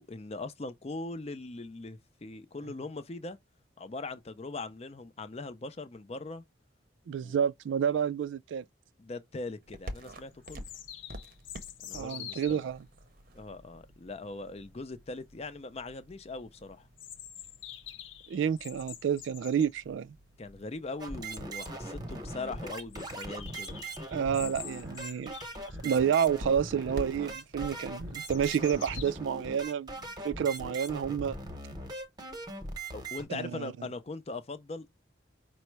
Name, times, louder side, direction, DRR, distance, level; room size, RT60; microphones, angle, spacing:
voice 1, 0.0-3.4 3.8-6.4 7.2-7.4 9.0-10.7 11.8-12.7 13.3-16.9 20.4-23.8 32.9-35.0, left 3 dB, 35° left, 0.5 m, -41 dB
voice 2, 7.1-8.6 11.9-12.8 18.3-20.2 24.1-25.3 25.8-29.9 30.2-31.4 33.3-33.7, right 8 dB, 80° right, 0.3 m, -29 dB
sound 1, 9.6-29.5, equal, 50° right, 0.7 m, -49 dB
sound 2, 10.4-12.6 17.0-19.7 21.4-21.5 21.7-21.8 22.2-22.3 22.9-26.1 26.6-27.1 27.6-29.1, left 10 dB, 85° left, 0.6 m, -47 dB
sound 3, 21.0-33.2, right 2 dB, 20° right, 0.9 m, -40 dB
5.3 x 2.1 x 4.5 m
head